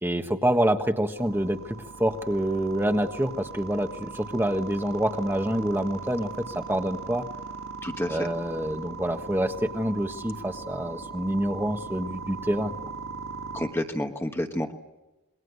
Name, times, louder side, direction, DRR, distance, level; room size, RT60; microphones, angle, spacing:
voice 1, 0.0-7.2 8.1-12.7, right 1 dB, 10° right, 5 dB, 1.4 m, -27 dB
sound 1, 1.2-13.7, right 4 dB, 70° right, 6.3 m, -39 dB
voice 2, 7.8-8.2 13.5-14.7, left 1 dB, 10° left, 5 dB, 1.2 m, -29 dB
27.5 x 22.0 x 8.2 m, 1.0 s
head